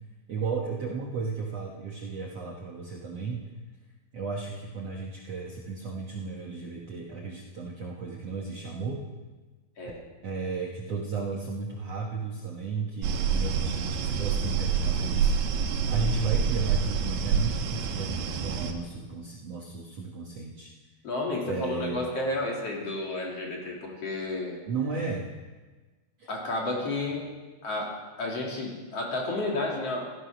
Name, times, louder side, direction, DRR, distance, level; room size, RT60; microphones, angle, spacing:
voice 1, 0.3-3.4 4.1-9.0 10.2-15.3 15.9-20.7 21.4-22.0 24.7-25.3 26.2-26.3, right 4 dB, 60° right, -1 dB, 1.8 m, -34 dB
sound 1, 13.0-18.7, right 6 dB, 90° right, 3.3 m, -27 dB
voice 2, 21.0-24.6 26.3-27.3 27.6-30.0, left 2 dB, 45° left, -1 dB, 3.0 m, -31 dB
15.0 x 14.0 x 5.9 m, 1.3 s
omnidirectional pair, 4.6 m